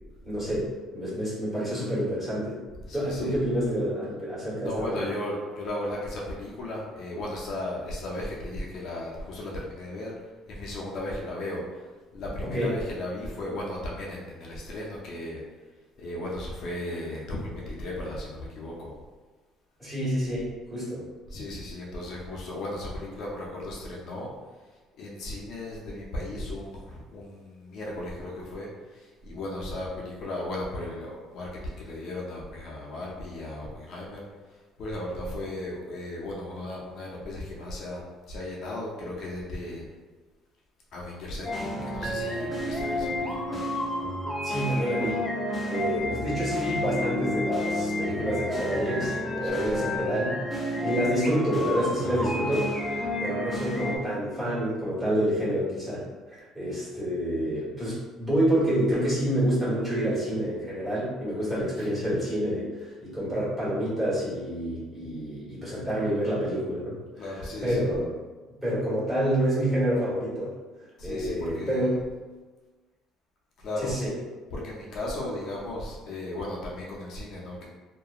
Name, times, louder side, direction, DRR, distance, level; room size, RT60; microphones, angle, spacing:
voice 1, 0.2-0.7 0.9-2.6 2.9-5.0 12.4-12.7 19.8-21.0 44.4-45.2 45.7-68.1 68.6-70.5 71.0-72.0 73.8-74.1, equal, 10° right, -10 dB, 1.4 m, -28 dB
voice 2, 2.8-3.4 4.6-10.1 10.5-11.8 12.1-15.4 16.0-18.9 21.3-24.3 25.0-34.2 34.8-39.8 40.9-43.6 49.4-49.7 61.8-61.9 67.2-67.9 71.0-71.9 73.6-73.9 74.5-77.7, left 1 dB, 60° left, -4 dB, 0.5 m, -36 dB
sound 1, 41.4-54.0, left 1 dB, 10° left, 0.5 m, -30 dB
2.8 x 2.2 x 2.4 m, 1.3 s
cardioid pair, 120°, 0 cm